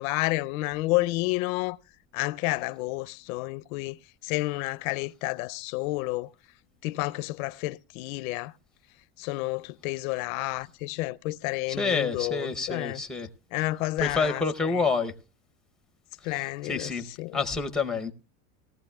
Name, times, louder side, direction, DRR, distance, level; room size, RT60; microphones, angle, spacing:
voice 1, 0.0-1.8 2.1-6.3 6.8-8.5 9.2-13.0 13.5-14.4 14.7-14.8 16.2-16.9 17.2-17.4, left 20 dB, 80° left, 0.5 m, -30 dB
voice 2, 11.7-13.3 14.0-15.1 16.6-17.1 17.3-18.1, left 4 dB, ahead, 0.6 m, -28 dB
19.0 x 15.0 x 2.2 m
supercardioid pair, 155°, 41 cm